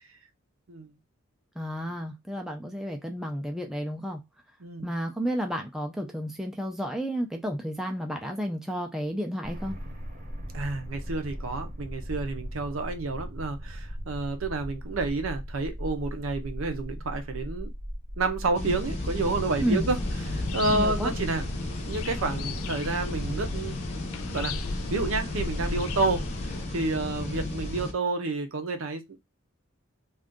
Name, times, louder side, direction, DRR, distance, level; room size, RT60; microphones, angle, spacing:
voice 1, 1.6-4.2 4.8-9.8 19.6-19.9 20.7-21.1, equal, ahead, 0.4 m, -31 dB
sound 1, 9.4-22.5, equal, 35° right, 0.8 m, -38 dB
voice 2, 10.5-17.7 18.2-20.0 20.3-21.4 21.9-24.0 24.3-29.2, right 3 dB, 75° right, 0.6 m, -30 dB
sound 2, 18.5-27.9, left 1 dB, 30° left, 0.7 m, -33 dB
sound 3, 19.9-26.7, left 5 dB, 80° left, 0.4 m, -38 dB
2.5 x 2.4 x 3.6 m
head